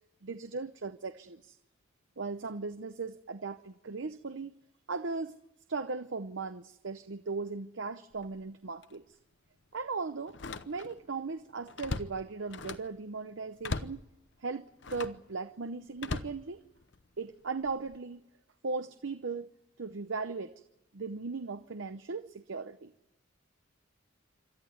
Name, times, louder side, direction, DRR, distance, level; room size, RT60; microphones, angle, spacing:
voice 1, 0.2-1.6 2.2-4.5 4.9-5.4 5.7-9.1 9.7-10.4 10.7-14.0 14.4-16.6 17.2-18.2 18.6-19.5 19.8-20.5 20.9-22.9, right 4 dB, 70° right, 10 dB, 0.7 m, -37 dB
Slam, 8.1-8.4 8.8-8.9 10.3-11.1 11.4-13.0 13.6-14.1 14.8-15.3 16.0-17.1 17.6-18.0, left 3 dB, 60° left, 0.9 m, -39 dB
27.5 x 13.0 x 9.4 m, 0.91 s
head